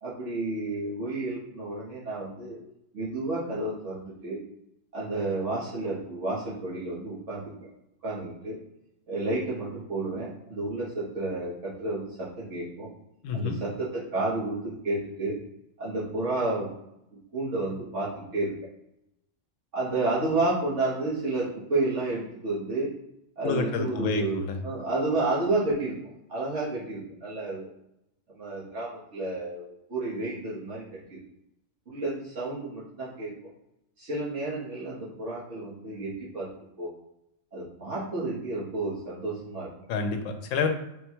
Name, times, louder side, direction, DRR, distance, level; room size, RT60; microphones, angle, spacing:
voice 1, 0.0-2.6 2.9-4.4 4.9-7.7 8.0-8.6 9.1-12.9 13.3-15.4 15.8-16.7 17.1-18.5 19.7-22.9 23.4-27.7 28.3-30.8 31.1-31.2 31.9-33.3 34.0-36.5 36.8-36.9 37.5-39.7, right 2 dB, 65° right, -8 dB, 1.4 m, -31 dB
voice 2, 13.2-13.6 23.4-24.6 39.9-40.7, left 4 dB, 75° left, 6 dB, 1.0 m, -28 dB
3.9 x 2.2 x 4.4 m, 0.83 s
omnidirectional pair, 1.4 m